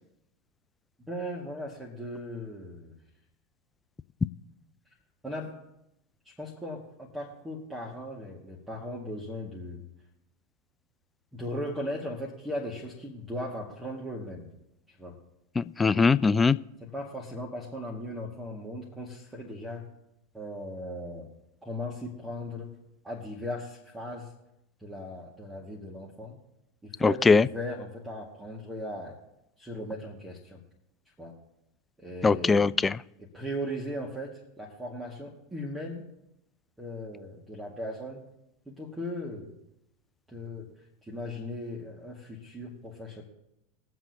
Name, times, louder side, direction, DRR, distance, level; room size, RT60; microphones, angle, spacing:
voice 1, 1.1-3.0 5.2-5.6 6.3-9.8 11.3-14.5 14.9-15.2 16.8-19.9 20.3-21.3 21.6-22.7 23.0-24.3 24.8-26.4 26.8-29.2 29.6-30.6 31.2-31.3 32.0-32.7 33.2-36.1 36.8-38.2 38.7-39.6 40.3-40.7 41.0-43.2, left 1 dB, 10° right, -3 dB, 2.0 m, -38 dB
voice 2, 15.6-16.6 27.0-27.5 32.2-32.9, left 4 dB, 15° left, 17 dB, 0.4 m, -21 dB
23.0 x 7.6 x 2.9 m, 0.87 s
figure-of-eight pair, 85°, 0 cm